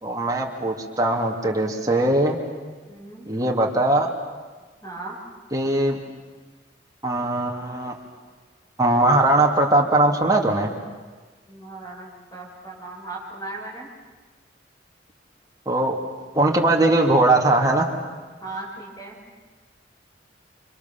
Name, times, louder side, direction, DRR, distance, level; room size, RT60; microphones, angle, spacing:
voice 1, 0.0-2.4 3.3-4.1 5.5-6.0 7.0-8.0 8.8-10.7 15.7-16.0 16.3-17.9, right 2 dB, 20° right, 0 dB, 2.8 m, -20 dB
voice 2, 2.9-3.2 4.8-5.2 11.5-13.9 18.4-19.2, right 2 dB, 20° left, -4 dB, 6.0 m, -37 dB
30.0 x 27.0 x 7.3 m, 1.3 s
head